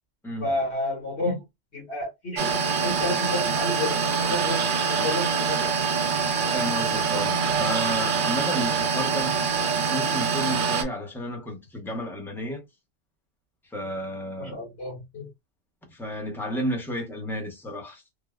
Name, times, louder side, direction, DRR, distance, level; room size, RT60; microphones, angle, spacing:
voice 1, 0.4-1.4 1.7-5.7 14.4-15.3, left 2 dB, 75° left, 1.8 m, -31 dB
sound 1, 2.4-10.8, right 6 dB, 60° right, 0.6 m, -25 dB
voice 2, 6.5-9.3 9.9-12.6 13.7-14.6 15.9-18.0, equal, 5° left, 0.5 m, -32 dB
3.2 x 2.1 x 2.3 m
omnidirectional pair, 1.1 m